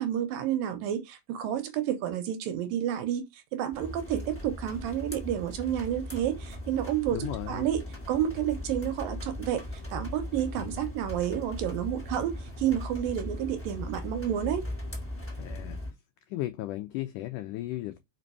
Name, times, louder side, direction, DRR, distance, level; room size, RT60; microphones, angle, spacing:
voice 1, 0.0-7.8 8.1-9.6 9.9-14.7, right 10 dB, 75° right, 2.5 m, -30 dB
sound 1, 3.7-15.9, left 1 dB, 5° left, 1.2 m, -39 dB
voice 2, 7.1-7.7 10.6-10.8 15.4-15.8 16.3-18.0, left 15 dB, 85° left, 1.8 m, -35 dB
5.3 x 5.2 x 4.5 m
omnidirectional pair, 4.4 m